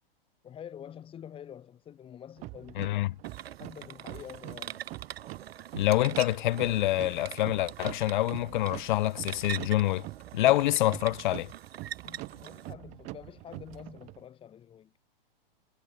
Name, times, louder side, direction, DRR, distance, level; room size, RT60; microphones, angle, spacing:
voice 1, 0.4-2.8 3.6-4.8 12.0-14.9, left 9 dB, 20° left, 6.6 m, -47 dB
sound 1, 2.4-14.2, right 22 dB, 25° right, 0.7 m, -44 dB
voice 2, 2.8-3.1 5.7-10.1 10.3-11.5, left 16 dB, 55° left, 1.1 m, -26 dB
sound 2, 3.2-12.7, right 10 dB, 90° right, 1.4 m, -43 dB
hypercardioid pair, 155°, 29 cm